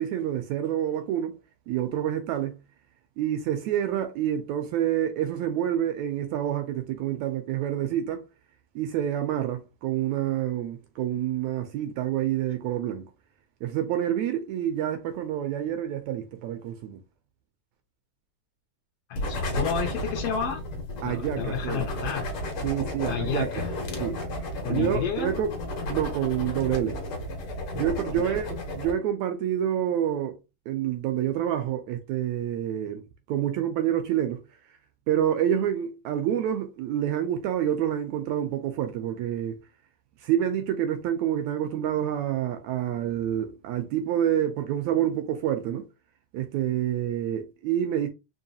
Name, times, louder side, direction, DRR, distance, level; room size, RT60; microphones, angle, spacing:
voice 1, 0.0-1.4 1.7-2.6 3.2-8.3 8.8-13.1 13.6-17.0 21.0-21.9 22.6-23.5 24.0-24.2 24.7-25.5 25.9-27.0 27.7-30.4 30.7-33.0 33.3-34.4 35.1-39.6 40.2-45.9 46.3-48.1, right 10 dB, 80° right, 1.7 m, -28 dB
voice 2, 19.1-20.6 21.0-22.3 23.1-23.7 24.6-25.3 28.2-28.3, left 7 dB, 75° left, 1.4 m, -31 dB
sound 1, 19.1-28.9, left 1 dB, 60° left, 1.5 m, -33 dB
4.6 x 2.8 x 2.7 m
omnidirectional pair, 3.5 m